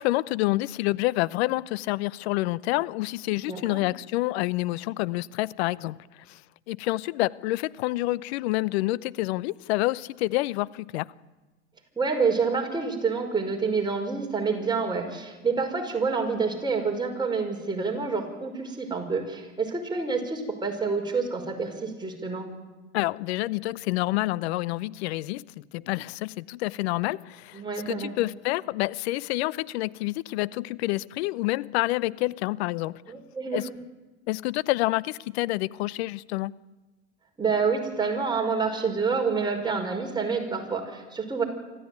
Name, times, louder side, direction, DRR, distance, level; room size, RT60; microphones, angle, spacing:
voice 1, 0.0-6.0 6.3-6.4 6.7-11.1 22.9-33.0 33.5-33.7 34.3-36.5, left 19 dB, 65° left, 19 dB, 0.8 m, -28 dB
voice 2, 3.5-3.8 12.0-22.5 27.5-28.2 33.1-33.6 37.4-41.4, right 4 dB, 10° right, 1 dB, 5.7 m, -28 dB
25.0 x 14.5 x 9.5 m, 1.2 s
hypercardioid pair, 85°, 35 cm